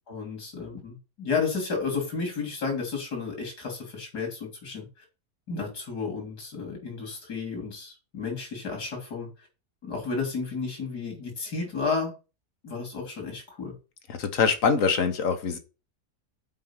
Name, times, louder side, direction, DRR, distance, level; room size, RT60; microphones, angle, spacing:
voice 1, 0.1-4.9 5.5-9.3 9.8-12.1 12.6-13.7, left 4 dB, 80° left, 2 dB, 4.0 m, -32 dB
voice 2, 14.1-15.6, left 5 dB, 60° left, 7 dB, 1.3 m, -24 dB
7.6 x 4.6 x 5.8 m, 0.31 s
omnidirectional pair, 1.7 m